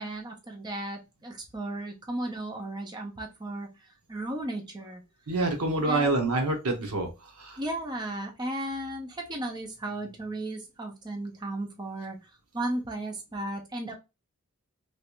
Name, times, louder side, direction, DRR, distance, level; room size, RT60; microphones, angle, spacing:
voice 1, 0.0-3.7 4.1-5.0 5.9-6.3 7.6-12.2 12.5-13.9, right 1 dB, 20° right, 2 dB, 0.6 m, -35 dB
voice 2, 5.3-7.6, right 2 dB, 85° right, 4 dB, 0.9 m, -27 dB
3.1 x 2.5 x 2.9 m, 0.25 s
head